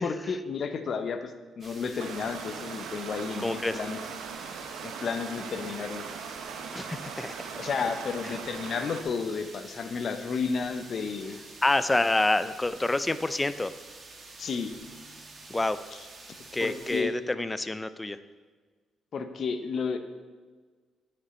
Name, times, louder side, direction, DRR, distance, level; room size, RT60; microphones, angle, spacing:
voice 1, 0.0-4.0 4.8-6.0 7.6-11.4 14.4-14.7 16.6-17.1 19.1-20.0, left 5 dB, 55° left, 9 dB, 0.7 m, -32 dB
sound 1, 1.6-17.0, right 3 dB, 40° right, 1.3 m, -48 dB
Stream, 2.0-9.0, right 6 dB, 85° right, 0.7 m, -40 dB
voice 2, 3.4-3.8 6.7-7.5 8.3-8.4 11.6-13.7 15.5-15.8 16.5-18.2, left 2 dB, 15° left, 13 dB, 0.4 m, -27 dB
9.6 x 5.3 x 4.3 m, 1.5 s
cardioid pair, 90°, 0 cm